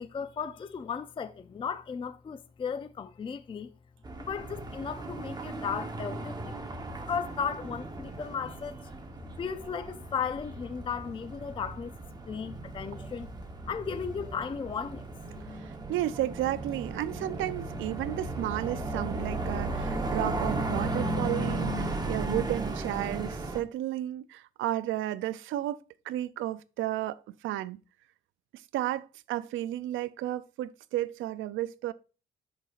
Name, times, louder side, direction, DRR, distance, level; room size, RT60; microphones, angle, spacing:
voice 1, 0.0-3.7 4.2-6.6 7.0-8.9 9.4-11.9 12.3-13.3 13.7-15.1, left 6 dB, 25° left, 0.4 m, -35 dB
sound 1, 4.0-23.6, right 2 dB, 20° right, 1.0 m, -35 dB
voice 2, 15.6-25.8 26.1-27.2 27.4-27.8 28.7-31.9, right 14 dB, 75° right, 0.4 m, -33 dB
11.0 x 4.1 x 2.5 m
cardioid pair, 90°, 20 cm